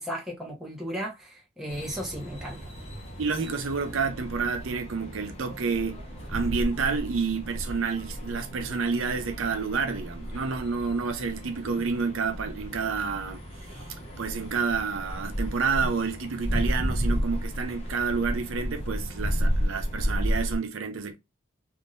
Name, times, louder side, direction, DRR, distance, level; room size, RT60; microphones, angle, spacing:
voice 1, 0.0-2.6, equal, ahead, 1.1 m, -35 dB
sound 1, 1.7-20.6, equal, 30° left, 0.9 m, -33 dB
voice 2, 3.2-6.0 6.3-13.4 13.7-13.8 14.2-21.2, right 5 dB, 80° right, 0.6 m, -29 dB
3.6 x 2.6 x 2.5 m
head